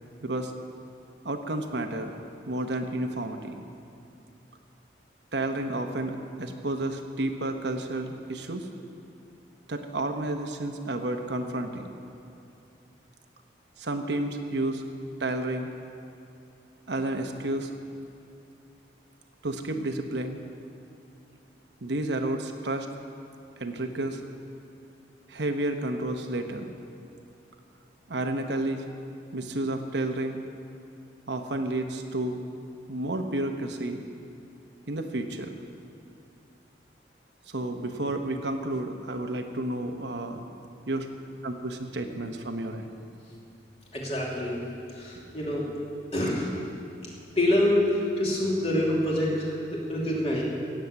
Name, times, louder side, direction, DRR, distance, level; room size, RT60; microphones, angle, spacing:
voice 1, 1.2-2.1 2.5-3.6 5.3-8.7 9.7-11.9 13.8-14.8 15.2-15.7 16.9-17.7 19.4-20.4 21.8-22.9 23.6-24.2 25.3-26.7 28.1-28.8 29.3-30.4 31.3-32.4 32.9-34.0 34.9-35.5 37.5-40.4 40.9-41.1 41.4-42.9 45.2-45.3, right 1 dB, 70° right, 5 dB, 1.0 m, -31 dB
voice 2, 43.9-44.6 44.9-45.6 46.1-46.5 47.4-50.4, left 1 dB, 35° left, -4 dB, 2.9 m, -26 dB
17.0 x 7.4 x 8.1 m, 2.7 s
head